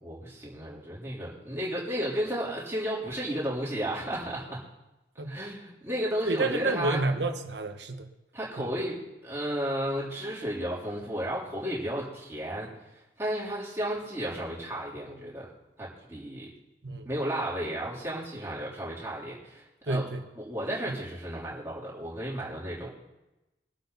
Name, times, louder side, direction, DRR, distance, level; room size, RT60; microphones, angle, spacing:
voice 1, 0.0-4.6 5.2-7.0 8.3-15.5 15.8-16.5 17.0-20.0 20.4-22.9, equal, 15° right, -7 dB, 3.8 m, -33 dB
voice 2, 6.3-8.1 8.6-8.7 16.8-17.1 19.9-20.2, right 2 dB, 75° right, 6 dB, 1.3 m, -29 dB
22.5 x 8.2 x 4.2 m, 0.99 s
head